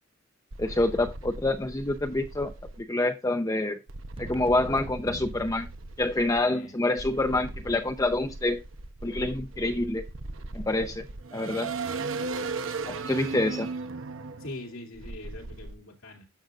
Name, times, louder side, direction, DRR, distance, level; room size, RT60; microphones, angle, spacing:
sound 1, 0.5-2.8 3.9-6.4 7.0-15.7, right 3 dB, 70° right, 0.8 m, -37 dB
voice 1, 0.6-2.5 2.8-3.8 4.2-5.7 6.0-8.6 9.0-10.1 10.5-11.1 11.3-11.7 12.9-13.7, left 2 dB, 15° left, 0.6 m, -27 dB
sound 2, 4.2-6.7, right 1 dB, 25° right, 0.9 m, -44 dB
voice 2, 14.4-16.3, left 1 dB, 90° left, 2.7 m, -43 dB
11.5 x 7.8 x 2.4 m
head